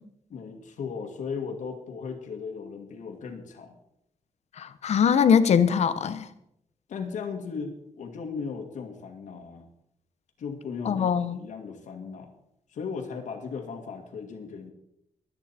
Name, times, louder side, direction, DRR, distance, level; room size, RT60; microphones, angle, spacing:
voice 1, 0.3-3.8 6.9-9.7 10.4-12.3 12.7-14.7, left 5 dB, 90° left, 3 dB, 2.1 m, -37 dB
voice 2, 4.6-6.3 10.8-11.4, left 7 dB, 65° left, 12 dB, 1.0 m, -22 dB
22.5 x 9.0 x 4.4 m, 0.78 s
wide cardioid pair, 160°, 12 cm